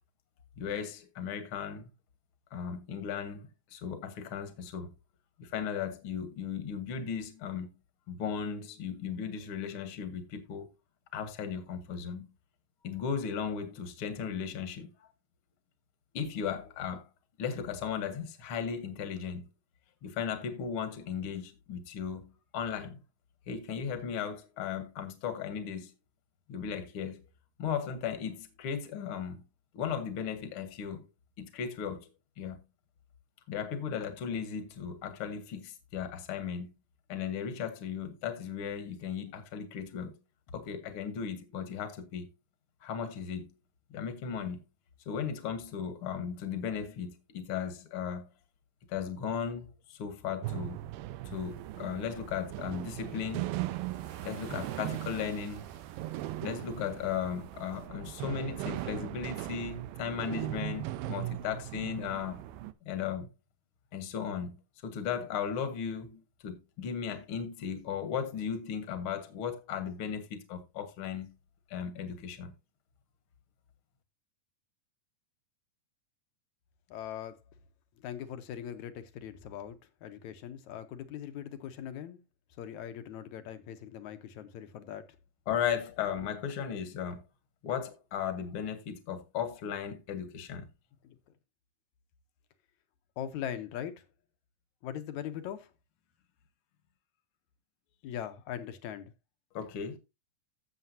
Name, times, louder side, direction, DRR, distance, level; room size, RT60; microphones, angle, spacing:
voice 1, 0.6-1.9 2.5-4.9 5.4-7.7 8.1-10.7 11.1-12.3 12.8-14.9 16.1-17.0 17.4-19.4 20.0-22.3 22.5-23.0 23.5-25.9 26.5-27.2 27.6-29.4 29.7-31.0 31.4-32.1 32.4-32.6 33.5-36.7 37.1-40.2 40.5-42.3 42.8-43.5 43.9-44.6 45.1-48.2 48.9-50.8 51.3-53.5 54.2-55.7 56.4-62.4 62.8-63.3 63.9-64.5 64.8-71.3 71.7-72.5 85.5-87.2 87.6-90.7 99.5-100.0, left 7 dB, 50° left, 1.7 m, -36 dB
sound 1, 50.4-62.7, right 15 dB, 85° right, 2.4 m, -39 dB
sound 2, 51.3-51.7 52.8-57.9, right 9 dB, 70° right, 2.6 m, -52 dB
voice 2, 76.9-77.4 78.0-82.2 82.6-85.1 91.0-91.2 93.2-94.0 94.8-95.7 98.0-99.1, left 10 dB, 70° left, 2.0 m, -41 dB
15.5 x 7.0 x 2.8 m
omnidirectional pair, 4.0 m